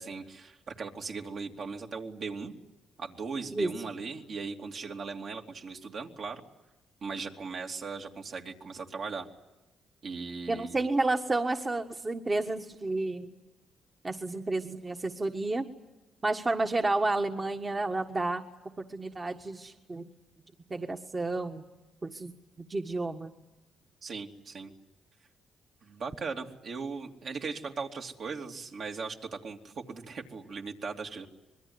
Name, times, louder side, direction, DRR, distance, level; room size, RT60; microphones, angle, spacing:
voice 1, 0.0-2.5 3.0-6.4 7.0-9.3 10.0-10.9 24.0-24.7 25.8-31.3, right 4 dB, 60° right, 2 dB, 2.9 m, -38 dB
voice 2, 10.5-13.3 14.0-15.6 16.2-18.4 18.9-20.1 20.7-21.6 22.0-22.3 22.6-23.3, right 2 dB, 25° right, 4 dB, 1.6 m, -30 dB
25.0 x 22.0 x 9.7 m, 1.0 s
cardioid pair, 90°, 0 cm